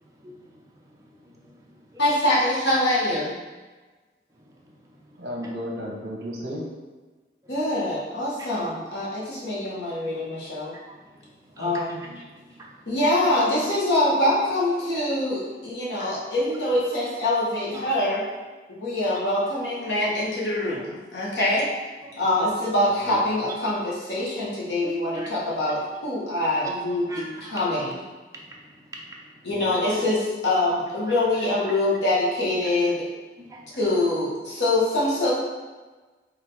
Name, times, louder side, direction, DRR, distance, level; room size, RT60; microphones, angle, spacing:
voice 1, 0.2-0.6 1.0-2.0 4.5-5.2 7.4-7.5 8.4-8.5 10.9-12.9 17.7-17.9 19.1-19.2 21.4-21.5 22.0-22.2 24.8-25.3 27.1-27.6 28.3-29.4 30.9-31.3 33.4-33.8, right 1 dB, 20° right, -3 dB, 0.5 m, -43 dB
voice 2, 2.0-3.3 7.5-10.7 11.6-12.0 12.9-18.2 18.7-21.7 22.2-28.0 29.4-33.1 33.8-35.3, left 1 dB, 85° left, -6 dB, 1.2 m, -24 dB
voice 3, 5.2-6.7 23.1-23.2 29.5-30.1, equal, 65° right, -2 dB, 0.8 m, -34 dB
4.0 x 3.6 x 3.2 m, 1.3 s
head